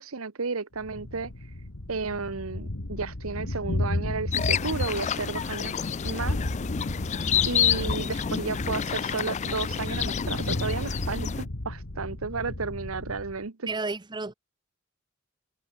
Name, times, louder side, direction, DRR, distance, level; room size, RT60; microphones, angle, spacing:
voice 1, 0.0-1.3 1.9-5.8 6.0-6.4 7.4-13.7, right 4 dB, 85° right, 1.1 m, -33 dB
Thunder, 0.8-13.4, left 1 dB, 75° left, 2.0 m, -33 dB
sound 1, 4.3-11.4, left 8 dB, 35° left, 0.3 m, -29 dB
voice 2, 13.7-14.3, right 3 dB, 20° right, 0.8 m, -31 dB
head